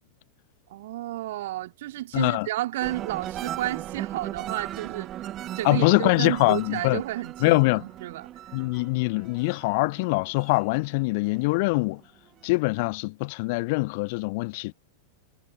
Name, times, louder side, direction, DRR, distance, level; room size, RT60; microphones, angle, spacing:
voice 1, 0.7-5.1 5.5-8.3, right 15 dB, 55° right, 3.2 m, -32 dB
voice 2, 2.1-2.5 5.6-7.0 7.4-7.8 8.5-12.0 12.4-14.7, left 26 dB, 50° left, 0.8 m, -23 dB
sound 1, 2.8-11.6 12.0-12.5, right 12 dB, 30° right, 1.4 m, -38 dB
figure-of-eight pair, 90°, 0 cm